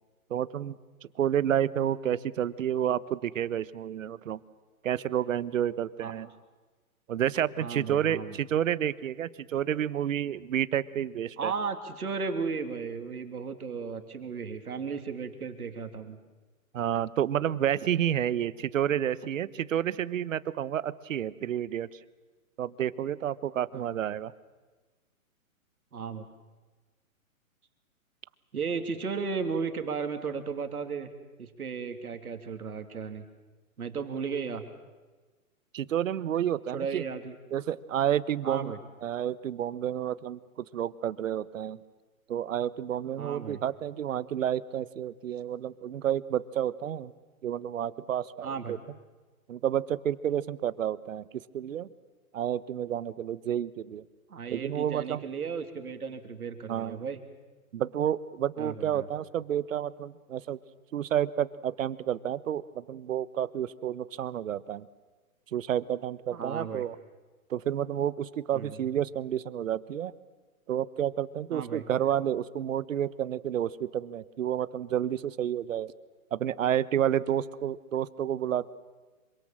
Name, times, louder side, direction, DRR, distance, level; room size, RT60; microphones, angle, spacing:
voice 1, 0.3-0.8 1.0-4.4 4.8-6.3 7.1-11.5 16.7-22.0 22.6-24.3 35.7-37.0 37.5-38.7 39.0-41.8 42.3-47.1 47.4-48.8 49.5-51.9 52.3-54.0 54.5-55.2 56.7-57.0 57.7-60.6 60.9-64.9 65.5-67.0 67.5-70.1 70.7-75.9 76.3-78.7, right 10 dB, 60° right, 18 dB, 1.3 m, -30 dB
voice 2, 7.6-8.4 11.4-16.2 23.7-23.8 25.9-26.3 28.5-31.1 31.4-33.2 33.8-34.6 36.7-37.3 38.4-38.8 43.2-43.6 48.4-48.8 54.3-57.2 58.6-59.1 66.3-66.8 68.5-68.8 71.5-71.8, right 5 dB, 85° right, 7 dB, 3.0 m, -35 dB
26.5 x 25.0 x 7.5 m, 1.3 s
hypercardioid pair, 145°, 43 cm